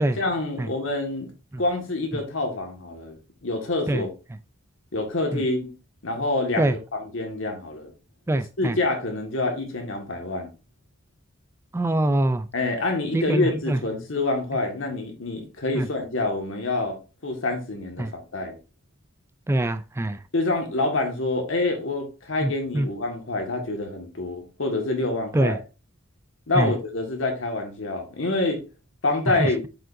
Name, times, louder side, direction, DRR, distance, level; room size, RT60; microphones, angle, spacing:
voice 1, 0.1-1.3 1.6-4.1 4.9-5.7 6.0-7.9 8.6-10.5 12.5-17.0 17.2-18.6 20.3-25.6 26.5-28.6 29.0-29.6, left 2 dB, 80° left, 1.7 m, -27 dB
voice 2, 8.3-8.7 11.7-12.4 13.1-13.8 15.8-15.9 18.0-18.1 19.5-20.2 22.4-22.9 25.3-25.6 26.6-26.7, right 1 dB, 15° right, 0.3 m, -23 dB
7.4 x 5.2 x 2.6 m
head